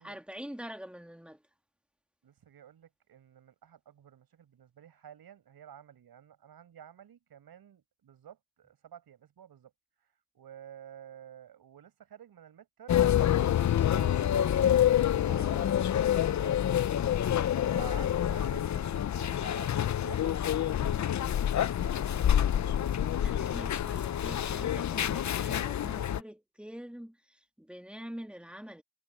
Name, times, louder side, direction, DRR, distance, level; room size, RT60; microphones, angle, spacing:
voice 1, 0.0-1.4 15.3-15.7 23.2-28.8, equal, 5° right, 2.1 m, -45 dB
voice 2, 2.2-9.7 10.0-13.1 13.5-17.2 17.6-23.8 24.2-24.7, right 9 dB, 60° right, 6.1 m, -52 dB
sound 1, 12.9-26.2, left 10 dB, 45° left, 0.8 m, -27 dB
supercardioid pair, 70°, 40 cm